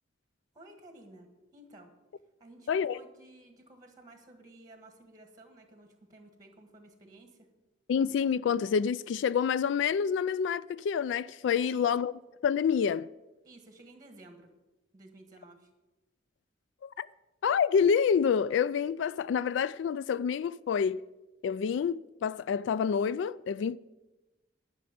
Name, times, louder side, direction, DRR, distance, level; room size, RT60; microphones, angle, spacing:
voice 1, 0.5-1.3 1.5-1.9 2.4-7.5 11.6-12.0 13.4-14.5 14.9-15.7, right 1 dB, 20° right, 1.5 m, -54 dB
voice 2, 2.7-3.0 7.9-12.1 12.4-13.1 16.8-17.1 17.4-21.0 21.4-23.8, left 7 dB, 75° left, 0.3 m, -28 dB
11.0 x 6.0 x 8.5 m
head